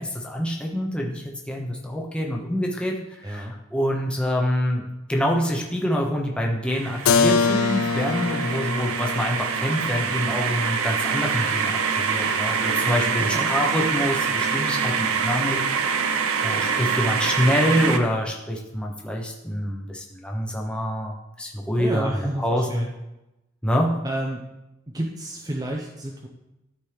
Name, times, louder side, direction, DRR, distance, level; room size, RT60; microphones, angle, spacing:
voice 1, 0.0-4.8 5.1-16.1 16.4-22.1 22.4-22.9 23.6-23.9, equal, 5° left, 0 dB, 0.9 m, -26 dB
voice 2, 3.2-3.5 13.1-13.5 21.8-22.9 24.0-24.4 24.9-26.3, right 1 dB, 15° right, 0 dB, 0.6 m, -31 dB
sound 1, 6.7-18.0, right 6 dB, 75° right, 0.7 m, -25 dB
Keyboard (musical), 7.1-12.7, left 5 dB, 70° left, 0.4 m, -26 dB
13.0 x 4.4 x 3.4 m, 0.94 s
head